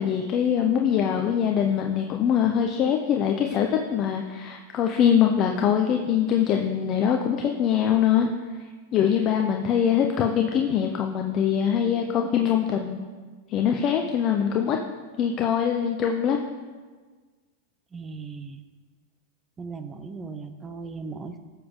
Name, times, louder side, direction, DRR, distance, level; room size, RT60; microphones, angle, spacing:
voice 1, 0.0-8.3 8.9-13.0 13.5-14.8 15.2-16.4, left 8 dB, 35° left, 3 dB, 0.7 m, -23 dB
voice 2, 17.9-18.6 19.6-21.4, right 4 dB, 20° right, 9 dB, 0.7 m, -37 dB
15.5 x 7.2 x 3.8 m, 1.5 s
supercardioid pair, 135°, 0 cm